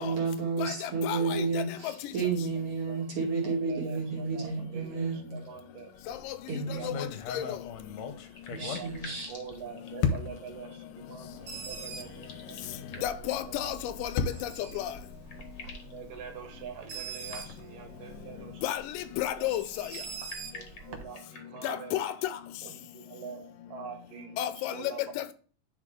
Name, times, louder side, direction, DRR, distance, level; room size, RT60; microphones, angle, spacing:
voice 1, 0.0-5.3 6.5-7.0 8.5-9.3, right 4 dB, 45° right, 3.0 m, -31 dB
voice 2, 0.6-1.6 6.3-6.4 6.8-7.1 7.3-7.4 13.0-14.1 14.4-14.5 14.8-14.9 18.6-19.6 21.6-22.1 24.4-24.7 25.2-25.3, left 12 dB, 85° left, 2.3 m, -32 dB
voice 3, 3.4-5.9 6.5-6.9 7.3-7.6 8.0-8.1 8.6-8.9 9.3-13.8 15.9-18.6 19.2-19.5 20.5-22.1 22.6-23.4 23.7-25.0, right 7 dB, 85° right, 3.0 m, -45 dB
sound 1, 6.0-6.3 6.8-9.6 10.0-10.6 11.3-11.4 11.7-11.8 13.5-15.8, left 6 dB, 70° left, 1.9 m, -35 dB
sound 2, 7.9-10.4 12.0-13.3 14.7-14.8 15.0-16.0 16.8-17.8 19.7-21.9, left 4 dB, 50° left, 1.4 m, -49 dB
Bird, 11.2-21.0, right 6 dB, 65° right, 1.4 m, -45 dB
11.0 x 4.1 x 3.7 m
omnidirectional pair, 3.8 m